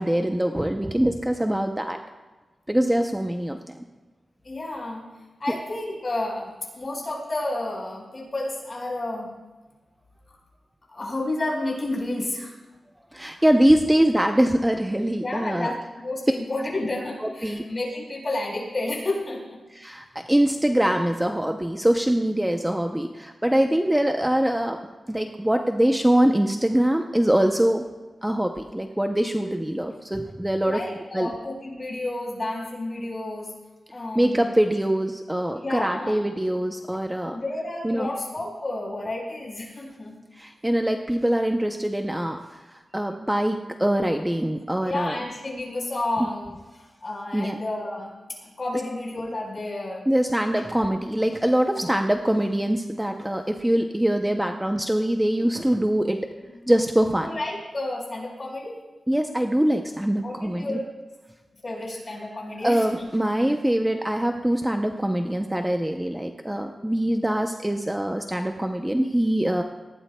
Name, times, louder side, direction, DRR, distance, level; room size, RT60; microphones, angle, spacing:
voice 1, 0.0-2.0 2.7-3.7 13.1-15.7 17.2-17.6 19.7-24.8 25.1-27.8 28.2-30.8 31.1-31.3 34.2-37.4 37.8-38.1 40.4-45.2 47.3-47.6 50.1-56.2 56.7-57.3 59.1-60.8 62.6-69.6, right 1 dB, 10° right, 4 dB, 0.6 m, -23 dB
voice 2, 4.4-5.0 5.4-9.3 10.3-10.4 10.9-12.6 13.4-13.5 15.2-19.6 30.6-33.5 33.9-34.5 35.5-36.2 37.2-40.2 44.8-50.1 56.4-56.7 57.2-58.8 60.2-60.9 61.6-63.1, left 2 dB, 35° left, -2 dB, 4.3 m, -31 dB
19.0 x 16.0 x 2.2 m, 1.2 s
wide cardioid pair, 125°, 0 cm